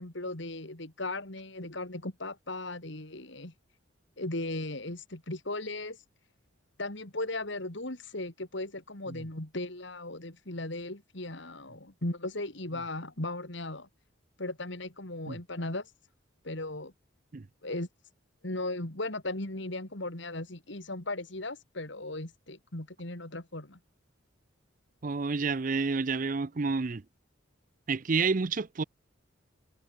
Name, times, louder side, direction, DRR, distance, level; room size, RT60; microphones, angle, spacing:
voice 1, 0.0-3.5 4.2-6.0 6.8-13.9 14.4-15.9 16.4-16.9 17.6-17.9 18.4-23.8, left 2 dB, 60° left, 2.8 m, -37 dB
voice 2, 25.0-27.0 27.9-28.8, right 4 dB, 40° right, 0.5 m, -29 dB
head